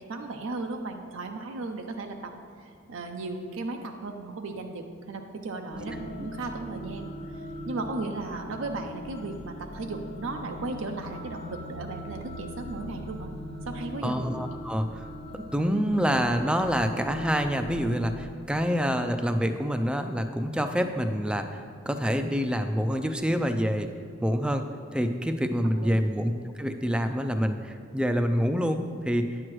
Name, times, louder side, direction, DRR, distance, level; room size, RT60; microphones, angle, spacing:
voice 1, 0.1-2.3 2.6-13.3 13.7-14.2 25.8-26.1, right 3 dB, 80° right, 4 dB, 0.5 m, -36 dB
sound 1, 5.7-18.3, left 1 dB, 30° left, 0.9 m, -40 dB
voice 2, 14.0-15.0 15.3-23.9 24.2-24.6 24.9-26.3 26.6-29.3, equal, 5° right, 7 dB, 0.3 m, -27 dB
9.7 x 7.7 x 3.1 m, 2.4 s
head